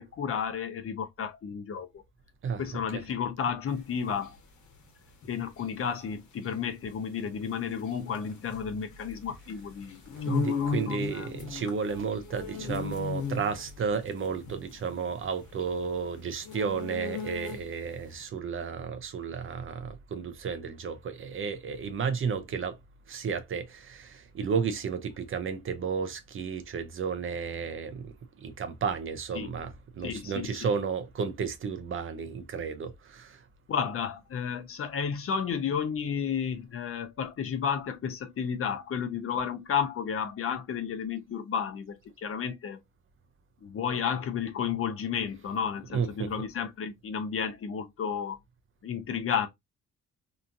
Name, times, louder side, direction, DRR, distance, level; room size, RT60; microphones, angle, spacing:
voice 1, 0.0-2.0 2.6-4.4 5.2-11.3 29.4-29.5 30.0-30.7 33.7-42.8 43.6-48.4 48.8-49.5, left 7 dB, 45° left, 0.7 m, -32 dB
voice 2, 2.4-3.0 10.2-22.8 23.1-33.4 45.9-46.3, right 6 dB, 45° right, 0.5 m, -33 dB
sound 1, 3.7-17.9, left 6 dB, 70° left, 1.1 m, -37 dB
2.9 x 2.4 x 2.5 m
cardioid pair, 90°, 30 cm